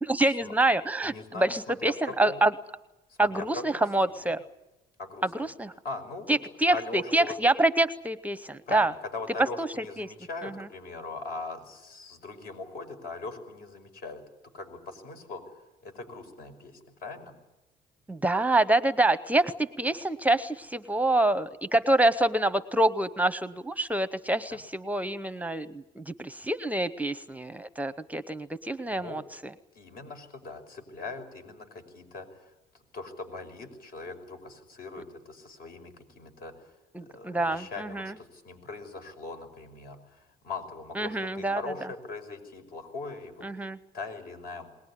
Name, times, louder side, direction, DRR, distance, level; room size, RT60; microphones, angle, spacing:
voice 1, 0.0-2.5 3.2-4.4 5.3-5.7 6.3-8.9 9.6-9.7 10.0-10.1 10.4-10.5 18.1-29.5 36.9-38.1 41.0-41.6 43.4-43.8, right 2 dB, 10° right, 14 dB, 0.7 m, -26 dB
voice 2, 1.0-2.4 3.1-3.8 5.0-5.5 5.8-6.4 6.7-7.4 8.7-14.2 14.5-15.5 15.8-17.3 24.5-24.6 28.9-29.2 29.7-32.5 32.9-36.5 37.0-43.7 43.9-44.7, left 3 dB, 60° left, 6 dB, 5.6 m, -40 dB
22.0 x 19.0 x 9.9 m, 0.99 s
cardioid pair, 110°, 17 cm